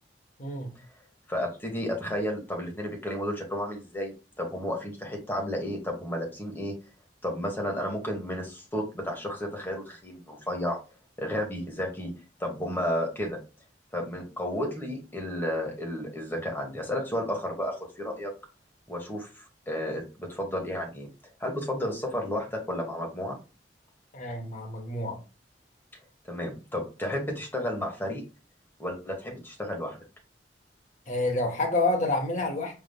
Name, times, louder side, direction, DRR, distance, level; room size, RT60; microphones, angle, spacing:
voice 1, 0.4-0.7 24.1-25.2 31.1-32.8, left 2 dB, 45° left, 1.1 m, -28 dB
voice 2, 1.3-6.7 7.2-10.8 11.2-12.1 12.4-13.4 13.9-18.3 18.9-21.1 21.4-23.4 26.2-28.2 28.8-30.0, left 1 dB, 10° left, 1.2 m, -32 dB
4.9 x 3.5 x 2.2 m
head